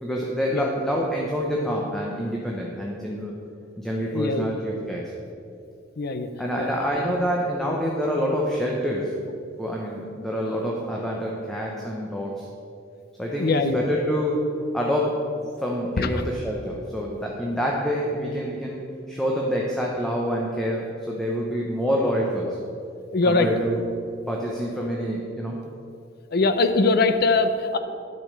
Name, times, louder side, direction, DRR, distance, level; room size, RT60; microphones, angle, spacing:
voice 1, 0.0-3.4 3.8-5.0 6.4-9.1 9.6-12.5 13.2-14.4 14.7-15.2 15.6-22.6 23.2-23.9 24.3-25.6, equal, ahead, -3 dB, 0.9 m, -27 dB
voice 2, 4.1-4.5 6.0-6.3 6.6-6.7 13.4-13.8 16.0-16.1 23.1-23.5 26.3-27.8, left 3 dB, 55° left, 10 dB, 0.6 m, -21 dB
11.0 x 5.3 x 6.7 m, 2.5 s
head